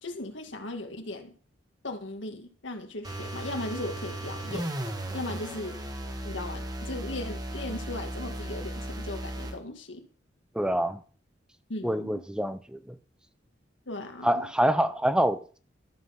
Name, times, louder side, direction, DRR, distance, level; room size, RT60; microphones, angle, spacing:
voice 1, 0.0-1.3 1.8-4.7 5.1-5.8 6.2-10.1 11.7-12.2 13.9-14.5, left 2 dB, 75° left, 1.9 m, -37 dB
sound 1, 3.0-9.6, right 1 dB, 20° right, 1.4 m, -36 dB
voice 2, 10.5-11.0 11.8-12.9 14.2-15.6, equal, 5° right, 0.5 m, -26 dB
13.0 x 7.5 x 5.8 m
head